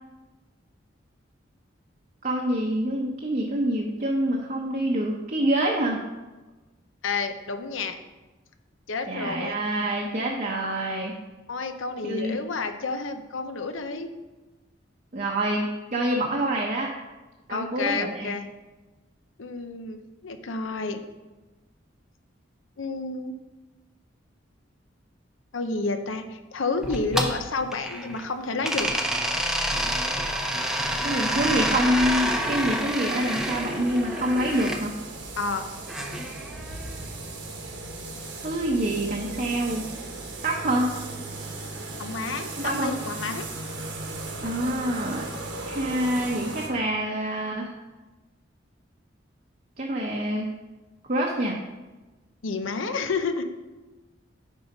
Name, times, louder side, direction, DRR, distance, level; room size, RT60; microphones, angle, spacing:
voice 1, 2.2-6.0 9.1-11.1 12.0-12.4 15.1-16.9 17.5-18.4 31.0-34.9 38.4-39.8 40.4-40.9 42.6-42.9 44.4-45.3 45.6-47.7 49.8-50.5 51.1-51.6, right 1 dB, 45° right, -1 dB, 0.8 m, -26 dB
voice 2, 7.0-8.0 8.9-9.5 11.5-14.1 17.5-18.4 19.4-21.0 22.8-23.3 25.5-28.9 35.4-35.7 42.0-43.5 52.4-53.4, left 4 dB, 90° left, 8 dB, 0.7 m, -30 dB
sound 1, 26.8-28.3 28.6-34.8 35.9-37.0, right 1 dB, 5° right, 0.6 m, -28 dB
sound 2, 29.7-46.7, right 2 dB, 65° right, 1.3 m, -38 dB
9.1 x 4.0 x 5.3 m, 1.2 s
head